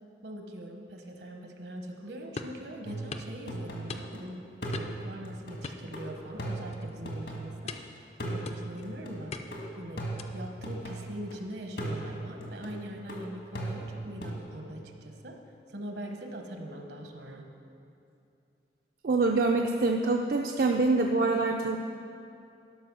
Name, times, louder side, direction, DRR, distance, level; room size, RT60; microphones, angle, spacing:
voice 1, 0.2-4.4 4.8-7.8 8.2-9.3 9.8-10.0 10.3-15.4 15.7-17.4, equal, 70° right, 3 dB, 1.1 m, -42 dB
sound 1, 2.4-2.6 3.1-3.3 3.9-4.3 4.7-5.1 5.6-6.4 6.7-7.0 7.7-8.0 8.4-8.8 9.3-9.7 10.2-10.5, left 3 dB, 35° left, 0.4 m, -41 dB
sound 2, 2.8-4.2 4.6-7.8 8.2-11.4 11.8-14.4, right 1 dB, 75° left, 1.7 m, -38 dB
voice 2, 19.0-21.8, right 3 dB, 55° right, 2 dB, 0.4 m, -25 dB
12.0 x 5.8 x 6.1 m, 2.7 s
head